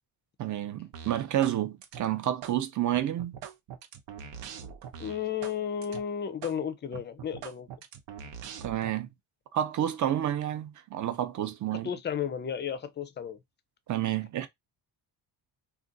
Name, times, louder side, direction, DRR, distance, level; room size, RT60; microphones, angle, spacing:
voice 1, 0.4-3.4 8.6-9.1 9.5-11.9 13.9-14.5, right 11 dB, 45° right, 0.5 m, -29 dB
sound 1, 0.9-1.6 1.8-2.6 2.9-5.6 5.8-6.0 6.4-6.6 6.9-8.9, right 8 dB, 85° right, 0.8 m, -43 dB
voice 2, 5.0-7.7 11.8-13.4, left 8 dB, 25° left, 0.4 m, -33 dB
2.5 x 2.3 x 3.8 m
cardioid pair, 145°, 42 cm